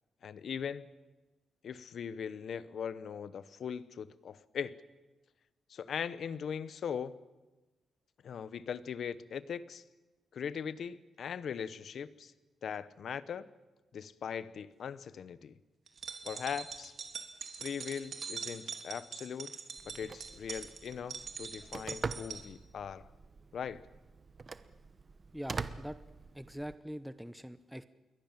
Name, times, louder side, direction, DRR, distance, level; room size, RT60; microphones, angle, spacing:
voice 1, 0.2-0.9 1.6-4.7 5.7-7.2 8.2-9.8 10.3-12.3 12.6-13.5 13.9-15.5 16.2-16.9 17.5-19.5 19.8-23.1 23.5-23.8, left 7 dB, 55° left, 16 dB, 0.9 m, -40 dB
sound 1, 15.9-22.4, right 5 dB, 45° right, 3.1 m, -43 dB
Telephone, 19.8-26.8, right 4 dB, 30° right, 0.9 m, -44 dB
voice 2, 25.3-26.0 26.3-27.9, equal, ahead, 12 dB, 0.7 m, -43 dB
28.0 x 22.5 x 7.5 m, 1.1 s
wide cardioid pair, 155°, 0 cm